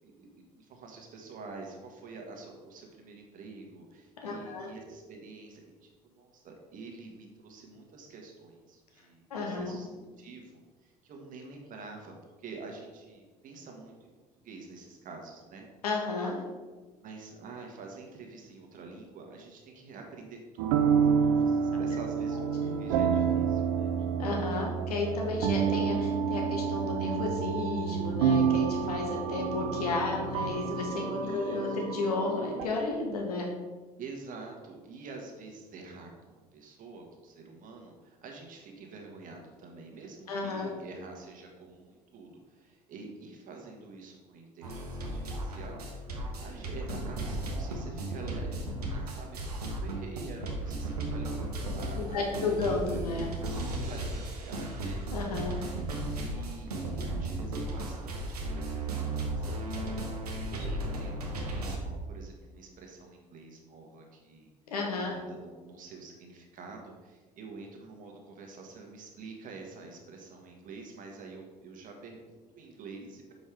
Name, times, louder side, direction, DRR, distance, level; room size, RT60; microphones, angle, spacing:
voice 1, 0.6-14.1 14.4-15.6 17.0-22.5 22.8-23.9 31.2-31.9 34.0-46.1 46.4-53.0 53.7-55.0 56.1-59.7 60.2-64.5 65.0-73.3, right 3 dB, 45° right, 1 dB, 1.4 m, -47 dB
voice 2, 4.2-4.7 9.3-9.8 15.8-16.4 22.6-22.7 24.2-33.5 40.3-40.7 52.0-53.3 55.1-55.6 64.7-65.2, left 3 dB, 75° left, 0 dB, 1.2 m, -32 dB
sound 1, 20.6-32.7, right 7 dB, 60° right, 0.5 m, -29 dB
sound 2, 44.6-61.8, right 1 dB, 75° right, 0.9 m, -35 dB
7.0 x 5.2 x 3.3 m, 1.3 s
figure-of-eight pair, 60°, 20 cm